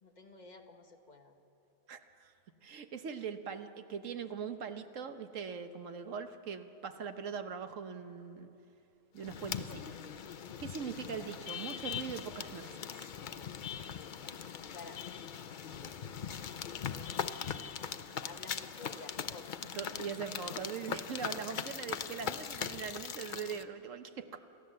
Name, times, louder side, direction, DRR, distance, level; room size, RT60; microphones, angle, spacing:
voice 1, 0.0-1.3 13.9-15.2 17.9-19.6, left 4 dB, 30° left, 4 dB, 1.2 m, -52 dB
voice 2, 1.9-2.3 2.6-8.5 9.1-10.0 10.6-13.1 16.9-17.0 19.7-24.4, right 6 dB, 60° right, 8 dB, 1.3 m, -41 dB
sound 1, 9.2-23.6, left 7 dB, 65° left, 0.5 m, -41 dB
28.5 x 14.0 x 7.6 m, 2.8 s
omnidirectional pair, 1.6 m